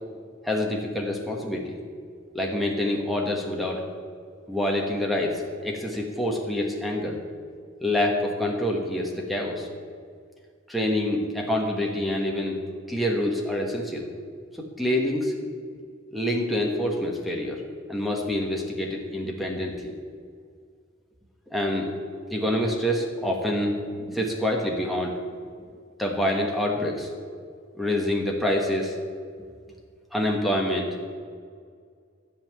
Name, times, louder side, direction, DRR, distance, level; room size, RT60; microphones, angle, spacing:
voice 1, 0.4-1.8 2.3-3.8 4.5-7.2 7.8-9.7 10.7-12.6 12.9-14.1 14.6-15.3 16.1-17.6 17.9-19.9 21.5-21.9 22.3-25.1 26.0-27.1 27.7-28.9 30.1-31.0, left 1 dB, ahead, 0 dB, 1.3 m, -26 dB
13.0 x 5.7 x 9.2 m, 2.1 s
head